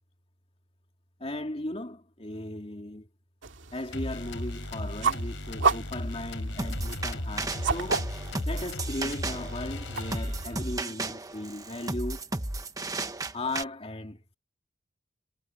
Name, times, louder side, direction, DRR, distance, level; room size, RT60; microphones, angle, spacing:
voice 1, 1.2-3.1 3.7-8.0 8.5-12.3 13.3-14.4, left 1 dB, 30° left, 2.5 m, -37 dB
sound 1, 3.4-10.8, right 5 dB, 80° right, 2.2 m, -33 dB
sound 2, 3.9-10.7, left 1 dB, 90° left, 3.9 m, -36 dB
sound 3, 6.6-13.6, right 2 dB, 20° right, 1.2 m, -34 dB
head